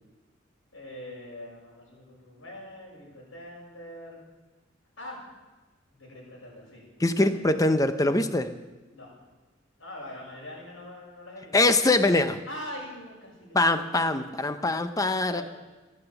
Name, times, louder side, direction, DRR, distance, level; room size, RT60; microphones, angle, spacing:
voice 1, 0.7-4.2 5.0-5.2 5.9-6.9 7.3-7.6 8.9-9.1 9.8-11.7 12.5-13.8 15.3-15.4, left 1 dB, 85° left, -3 dB, 6.9 m, -43 dB
voice 2, 7.0-8.5 11.5-12.4 13.5-15.4, left 2 dB, 15° left, 9 dB, 0.8 m, -23 dB
15.5 x 9.0 x 8.2 m, 1.2 s
head